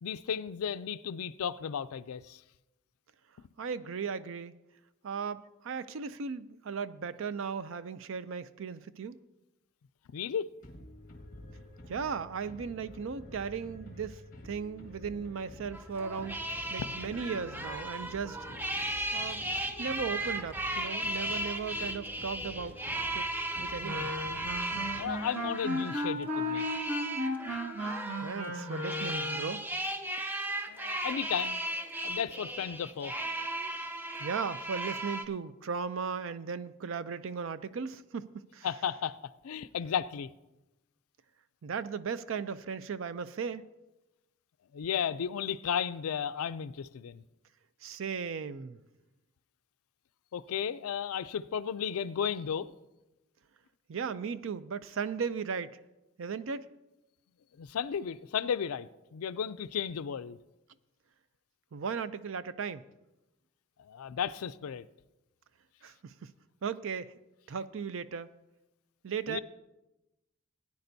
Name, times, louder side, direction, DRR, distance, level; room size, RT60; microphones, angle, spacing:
voice 1, 0.0-2.4 10.1-10.5 16.8-17.0 25.0-26.7 30.7-31.6 32.0-33.1 38.6-39.2 39.4-40.3 44.7-47.2 50.3-52.7 57.6-60.4 63.8-64.9 69.3-69.4, left 7 dB, 80° left, 0.4 m, -34 dB
voice 2, 3.6-4.5 5.0-9.1 11.9-16.4 16.7-18.4 19.1-19.4 19.8-22.8 23.1-23.3 23.6-24.1 28.2-29.6 34.2-38.7 41.6-43.7 47.8-48.8 53.9-55.8 56.2-56.7 61.7-62.9 65.8-66.3 66.6-67.1 67.5-68.3 69.0-69.4, right 6 dB, 60° right, 0.4 m, -36 dB
sound 1, 10.6-25.7, left 1 dB, 40° left, 1.6 m, -49 dB
sound 2, 15.7-35.2, right 1 dB, 10° right, 0.5 m, -36 dB
Wind instrument woodwind instrument, 23.8-29.6, left 1 dB, 80° right, 1.9 m, -35 dB
18.0 x 9.6 x 2.7 m
head